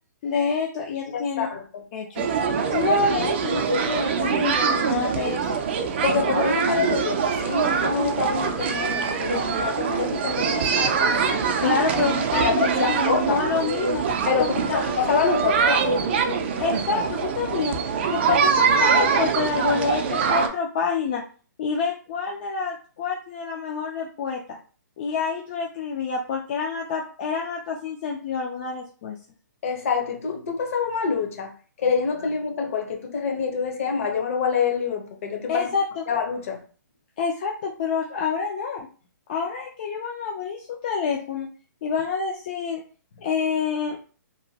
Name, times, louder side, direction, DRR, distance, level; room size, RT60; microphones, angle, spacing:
voice 1, 0.2-1.5 1.9-2.3 2.7-5.5 11.6-14.1 14.4-14.8 16.6-17.8 18.1-21.2 21.6-24.4 25.0-29.2 35.5-36.0 37.2-38.9 39.3-41.5 41.8-42.8 43.2-44.0, left 5 dB, 30° left, 0.4 m, -27 dB
voice 2, 1.1-1.8 6.0-11.4 12.4-13.4 14.3-16.0 29.6-31.5 31.8-35.7 36.1-36.6, left 6 dB, 45° left, 0.8 m, -26 dB
sound 1, 2.2-20.5, right 6 dB, 35° right, 0.4 m, -23 dB
2.9 x 2.1 x 2.8 m
hypercardioid pair, 160°, 10 cm